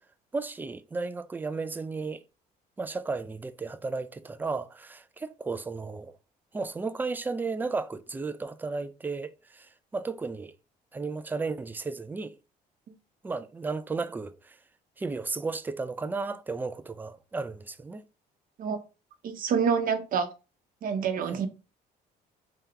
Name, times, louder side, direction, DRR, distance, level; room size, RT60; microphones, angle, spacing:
voice 1, 0.3-2.2 2.8-6.1 6.5-10.5 10.9-12.4 13.2-14.6 15.0-18.0 21.2-21.4, right 4 dB, 10° right, 0.3 m, -34 dB
voice 2, 19.2-20.3 20.8-21.5, right 6 dB, 55° right, 0.8 m, -27 dB
3.3 x 2.8 x 3.7 m
cardioid pair, 110°, 17 cm